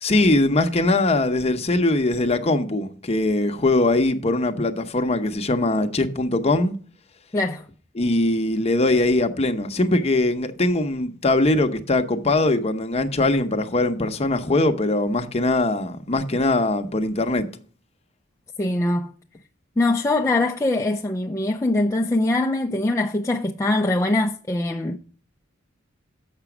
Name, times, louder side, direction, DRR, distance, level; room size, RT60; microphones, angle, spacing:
voice 1, 0.0-6.8 8.0-17.5, left 2 dB, 30° left, 0.8 m, -21 dB
voice 2, 7.3-7.7 18.6-19.1 19.8-25.0, left 2 dB, 15° left, 0.4 m, -22 dB
7.5 x 6.0 x 5.9 m
head